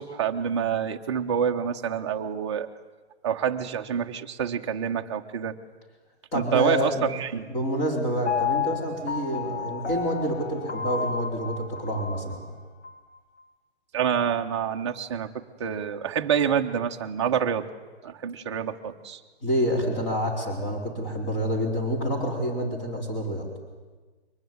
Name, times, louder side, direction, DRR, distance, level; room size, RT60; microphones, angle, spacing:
voice 1, 0.0-2.7 3.2-5.5 6.3-7.5 13.9-17.6 18.0-19.2, right 8 dB, 25° right, 4 dB, 1.1 m, -27 dB
voice 2, 6.3-7.1 7.5-12.4 19.4-23.5, equal, 15° left, 0 dB, 4.7 m, -28 dB
Piano, 8.3-12.3 12.8-12.9, left 6 dB, 90° left, 3.7 m, -31 dB
23.5 x 20.0 x 9.6 m, 1.3 s
hypercardioid pair, 170°, 33 cm